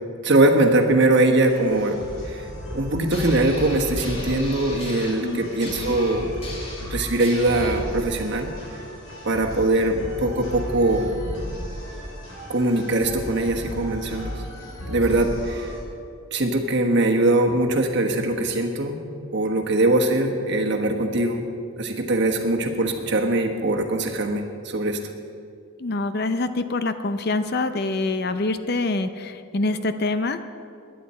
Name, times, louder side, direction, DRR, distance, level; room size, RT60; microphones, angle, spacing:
voice 1, 0.2-6.5 6.9-8.5 9.2-11.1 12.5-14.3 14.9-15.7 16.3-21.5 21.7-25.0, right 2 dB, 55° right, 2 dB, 1.3 m, -22 dB
sound 1, 1.4-15.8, equal, 65° left, 3.5 m, -35 dB
sound 2, 3.1-7.8, left 1 dB, 30° left, 2.1 m, -38 dB
voice 2, 5.1-5.4 25.8-30.4, left 2 dB, 45° left, 10 dB, 0.6 m, -25 dB
21.0 x 10.0 x 4.3 m, 2.4 s
head